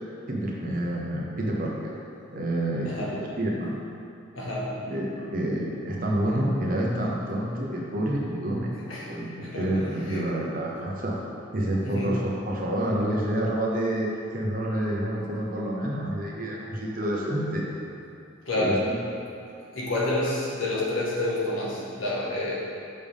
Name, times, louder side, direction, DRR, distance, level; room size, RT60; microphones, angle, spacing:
voice 1, 0.3-1.9 2.3-3.8 4.8-8.7 9.1-11.1 11.5-17.6 18.6-18.9, right 1 dB, 45° right, -3 dB, 0.9 m, -28 dB
voice 2, 4.3-4.7 8.7-9.1 9.4-10.3 11.8-12.2 18.4-18.8 19.7-22.5, left 2 dB, 85° left, -6 dB, 1.5 m, -29 dB
6.8 x 5.3 x 3.6 m, 2.6 s
head